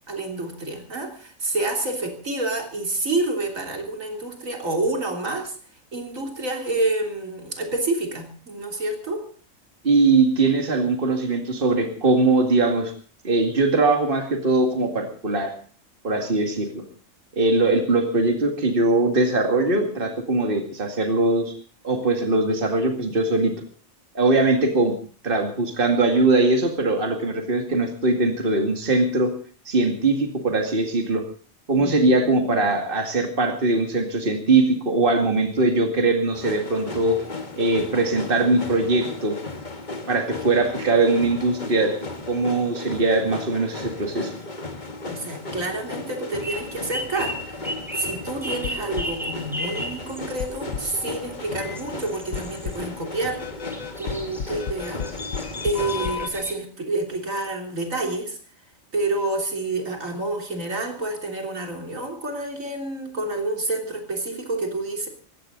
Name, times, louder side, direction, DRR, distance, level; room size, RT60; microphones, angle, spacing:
voice 1, 0.1-5.6 5.9-9.3 31.7-32.1 45.1-53.4 54.0-55.1 55.6-58.4 58.9-65.1, right 2 dB, 75° right, 3 dB, 3.8 m, -28 dB
voice 2, 9.8-12.9 13.2-15.5 16.0-16.8 17.4-21.5 21.8-23.5 24.1-24.9 25.2-29.3 29.7-31.2 31.7-37.2 37.6-39.4 40.1-42.0 42.3-44.3, right 2 dB, 40° right, 4 dB, 2.5 m, -21 dB
sound 1, 36.3-56.2, left 2 dB, 35° left, 1.8 m, -36 dB
sound 2, 46.4-56.5, equal, ahead, 4.7 m, -36 dB
sound 3, 48.6-49.2 49.6-49.8 50.4-51.0 51.6-51.8 52.3-52.9 53.4-56.3, left 7 dB, 80° left, 1.4 m, -33 dB
20.5 x 16.0 x 3.9 m, 0.41 s
omnidirectional pair, 1.4 m